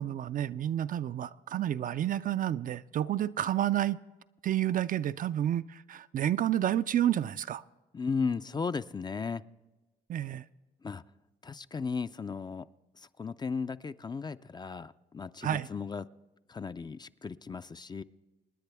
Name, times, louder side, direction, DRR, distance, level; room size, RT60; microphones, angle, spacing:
voice 1, 0.0-4.0 4.4-7.6 10.1-10.4 15.4-15.7, right 11 dB, 50° right, 0.4 m, -30 dB
voice 2, 7.9-9.4 10.8-11.0 11.4-12.7 13.2-16.0 16.5-18.0, left 5 dB, 25° left, 0.4 m, -35 dB
26.5 x 9.9 x 3.5 m
supercardioid pair, 75°, 18 cm